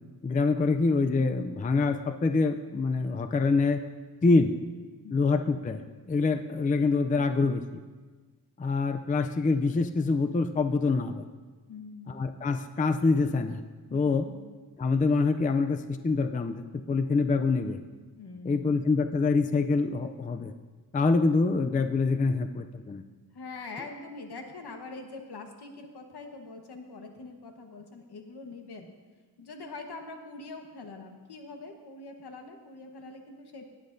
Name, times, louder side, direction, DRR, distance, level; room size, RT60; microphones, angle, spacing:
voice 1, 0.2-3.8 4.2-4.5 5.1-7.8 8.6-11.2 12.1-13.6 13.9-14.3 14.8-17.8 18.4-20.5 20.9-23.0, left 3 dB, 20° left, 8 dB, 0.4 m, -25 dB
voice 2, 11.7-12.3 13.9-14.5 18.2-18.8 23.3-28.9 29.4-33.6, left 3 dB, 70° left, 3 dB, 1.3 m, -44 dB
17.0 x 10.0 x 2.6 m, 1.4 s
wide cardioid pair, 145°, 40 cm